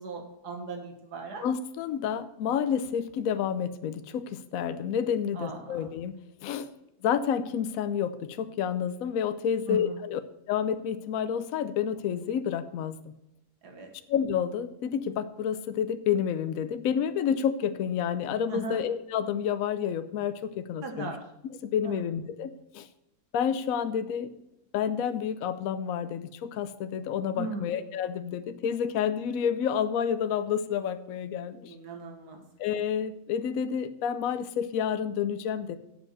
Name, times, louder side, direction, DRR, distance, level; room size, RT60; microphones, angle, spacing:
voice 1, 0.0-1.5 5.3-5.9 9.7-10.0 13.6-13.9 18.5-18.8 20.8-21.2 21.8-22.0 27.4-27.7 31.7-32.4, right 4 dB, 80° right, 3 dB, 2.0 m, -38 dB
voice 2, 1.4-6.7 7.0-10.2 10.5-13.0 14.1-21.1 21.6-22.9 23.3-24.3 24.7-31.7 32.6-35.8, left 8 dB, 70° left, 11 dB, 1.0 m, -29 dB
8.1 x 7.2 x 6.7 m, 0.85 s
omnidirectional pair, 1.7 m